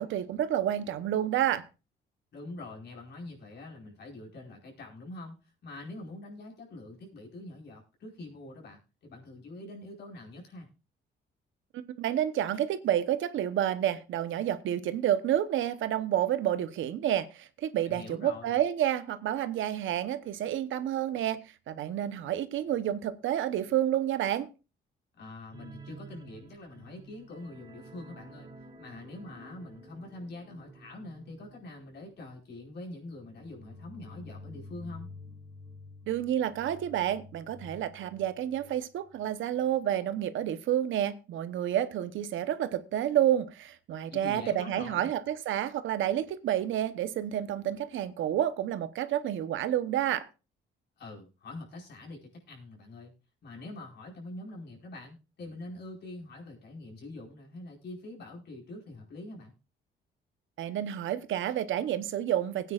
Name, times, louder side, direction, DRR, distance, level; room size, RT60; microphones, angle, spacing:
voice 1, 0.0-1.6 11.7-21.4 21.7-24.5 36.1-50.2 60.6-62.7, right 11 dB, 75° right, 0.9 m, -29 dB
voice 2, 2.3-10.7 17.8-18.6 25.2-28.5 28.8-35.1 44.1-45.1 51.0-53.1 53.4-59.5, left 2 dB, 60° left, 4.7 m, -44 dB
sound 1, 25.5-38.8 39.1-39.3 39.6-39.7, equal, 25° right, 4.1 m, -50 dB
19.0 x 9.3 x 2.4 m
cardioid pair, 90°, 20 cm